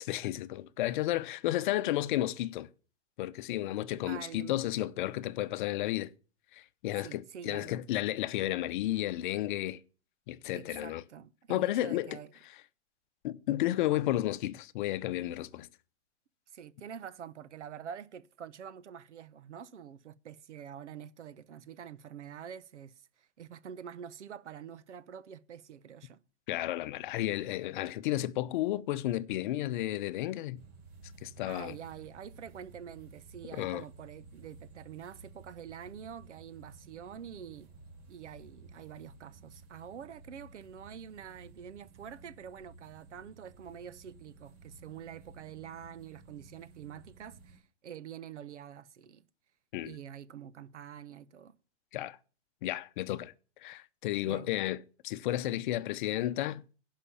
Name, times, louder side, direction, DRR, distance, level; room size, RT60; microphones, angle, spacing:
voice 1, 0.0-2.7 3.2-6.1 6.5-9.8 10.3-11.0 11.5-12.2 13.2-15.7 26.5-30.6 31.2-31.7 33.5-33.8 49.7-49.9 51.9-52.2 52.6-53.3 53.6-56.6, left 14 dB, 45° left, 0.8 m, -32 dB
voice 2, 4.1-4.6 7.0-7.8 10.5-12.3 16.5-26.2 31.5-37.7 38.1-49.2 49.8-51.5 54.2-54.5, right 8 dB, 75° right, 1.0 m, -46 dB
sound 1, 30.5-47.6, right 3 dB, 25° right, 4.2 m, -54 dB
11.5 x 5.3 x 8.6 m
hypercardioid pair, 130°, 35 cm